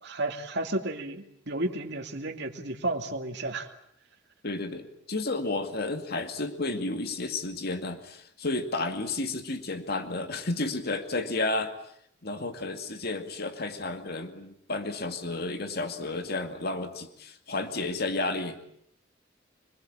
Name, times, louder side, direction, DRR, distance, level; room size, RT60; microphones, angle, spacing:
voice 1, 0.0-3.7, right 2 dB, 65° right, 2 dB, 2.7 m, -32 dB
voice 2, 4.4-11.7 12.2-18.6, left 2 dB, 55° left, 7 dB, 2.3 m, -32 dB
27.0 x 21.5 x 8.9 m, 0.70 s
head